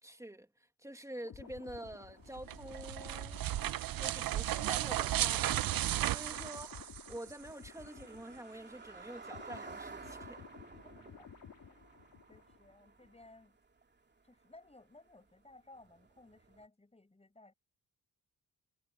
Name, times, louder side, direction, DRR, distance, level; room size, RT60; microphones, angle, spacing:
voice 1, 0.0-3.5 4.0-10.4, right 1 dB, 10° right, 2.4 m, -48 dB
sound 1, 1.2-8.7 9.0-12.7 13.0-13.3, left 8 dB, 60° left, 4.0 m, -54 dB
sound 2, 1.4-16.7, right 4 dB, 30° right, 2.7 m, -55 dB
sound 3, 2.4-7.3, right 13 dB, 65° right, 0.7 m, -34 dB
voice 2, 6.1-6.6 10.8-11.3 11.7-12.0 12.3-13.6 14.2-17.5, left 2 dB, 15° left, 7.6 m, -59 dB
cardioid pair, 115°, 37 cm